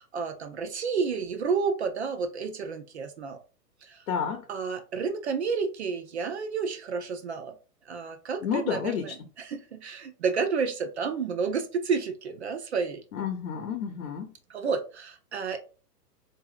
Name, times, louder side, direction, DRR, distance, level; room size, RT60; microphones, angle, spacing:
voice 1, 0.0-3.4 3.8-4.0 4.5-7.5 7.9-13.0 14.5-15.6, right 5 dB, 45° right, 7 dB, 0.4 m, -30 dB
voice 2, 4.1-4.4 8.4-9.0 13.1-14.3, left 7 dB, 55° left, 4 dB, 0.8 m, -30 dB
3.8 x 2.5 x 2.4 m, 0.35 s
hypercardioid pair, 145°, 49 cm